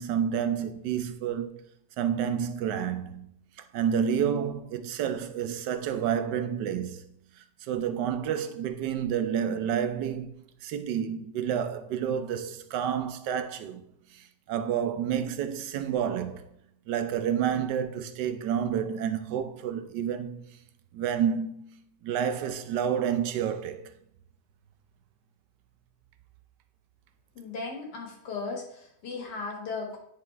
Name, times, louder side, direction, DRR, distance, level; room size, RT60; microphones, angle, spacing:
voice 1, 0.0-1.6 2.0-3.3 3.7-7.0 7.6-10.3 10.6-13.8 14.1-16.5 16.9-20.4 20.9-23.9, right 8 dB, 85° right, 1.3 m, -29 dB
voice 2, 27.3-30.0, left 4 dB, 80° left, 2.2 m, -36 dB
9.9 x 4.0 x 3.3 m
omnidirectional pair, 1.8 m